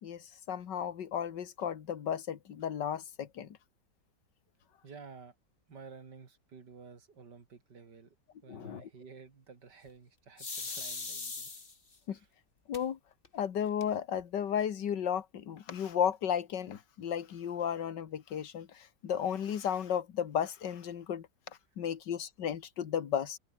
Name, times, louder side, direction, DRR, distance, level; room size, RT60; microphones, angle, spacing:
voice 1, 0.0-3.6 8.5-8.9 12.1-12.2 12.7-13.0 13.3-21.3 21.8-23.4, left 8 dB, 90° left, 2.0 m, -34 dB
voice 2, 4.8-5.4 5.7-8.1 8.4-11.6 12.1-12.3, right 5 dB, 75° right, 3.2 m, -52 dB
sound 1, 10.4-12.0 12.7-12.8 13.2-13.3 13.6-14.2, left 4 dB, 30° left, 2.1 m, -40 dB
omnidirectional pair, 1.8 m